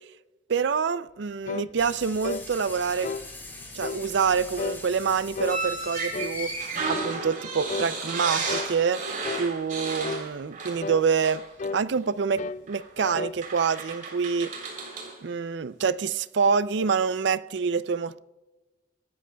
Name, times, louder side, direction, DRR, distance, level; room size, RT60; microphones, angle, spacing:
voice 1, 0.5-3.1 3.7-6.5 6.9-9.0 9.3-11.4 11.7-14.5 15.2-18.2, right 6 dB, 65° right, 0.4 m, -26 dB
sound 1, 1.5-1.7 2.2-2.5 3.0-3.3 3.8-4.0 4.6-4.8 5.4-5.6 6.1-6.4 6.9-7.2 7.7-7.9 8.5-8.7 9.2-9.5 10.0-10.3 10.8-11.0 11.6-11.8 12.4-12.6 13.0-13.4, left 4 dB, 40° left, 0.4 m, -33 dB
sound 2, 1.8-6.8, left 2 dB, 10° left, 4.0 m, -43 dB
sound 3, 5.4-10.9 11.2-11.4 12.7-12.8 13.4-15.1, right 3 dB, 45° right, 3.5 m, -33 dB
25.0 x 12.5 x 2.3 m
head